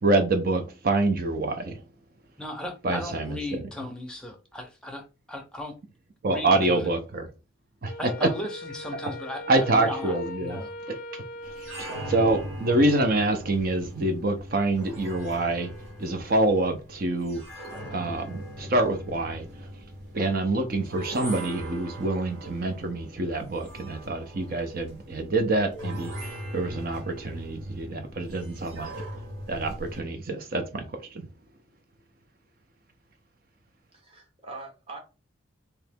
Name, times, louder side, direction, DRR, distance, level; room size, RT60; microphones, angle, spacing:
voice 1, 0.0-1.8 2.8-3.7 6.2-7.3 7.8-7.9 8.2-8.3 9.5-10.6 11.1-11.2 11.8-15.7 16.0-17.4 17.9-19.5 20.1-28.9 29.5-31.3, right 2 dB, 45° right, 0.6 m, -26 dB
voice 2, 2.4-5.7 6.3-6.9 8.0-10.7, left 1 dB, 5° left, 0.6 m, -36 dB
Wind instrument woodwind instrument, 7.9-12.5, left 2 dB, 45° left, 0.4 m, -40 dB
sound 1, 11.4-30.0, equal, 75° right, 1.6 m, -40 dB
voice 3, 33.9-35.0, right 3 dB, 30° right, 1.0 m, -42 dB
3.1 x 2.8 x 3.5 m
head